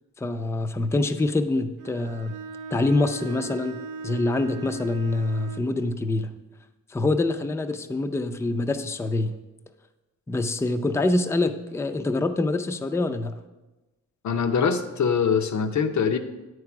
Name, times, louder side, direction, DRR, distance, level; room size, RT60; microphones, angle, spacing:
voice 1, 0.2-2.3 2.7-3.8 4.0-6.3 6.9-9.3 10.3-13.3, left 2 dB, 10° left, 9 dB, 0.4 m, -25 dB
Bowed string instrument, 1.8-5.7, right 4 dB, 85° right, 0.6 m, -38 dB
voice 2, 14.2-16.2, left 6 dB, 70° left, 9 dB, 0.7 m, -23 dB
9.5 x 4.7 x 5.9 m, 1.1 s
wide cardioid pair, 150°, 30 cm